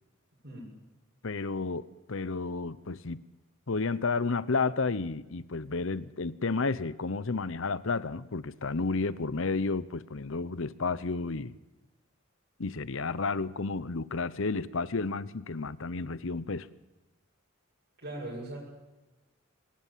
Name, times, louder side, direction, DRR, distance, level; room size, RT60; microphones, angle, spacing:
voice 1, 1.2-3.2 3.7-11.6 12.6-16.7, left 4 dB, 70° left, 17 dB, 0.9 m, -31 dB
voice 2, 18.0-18.6, right 1 dB, 55° right, -4 dB, 7.4 m, -39 dB
25.0 x 20.0 x 7.5 m, 1.1 s
head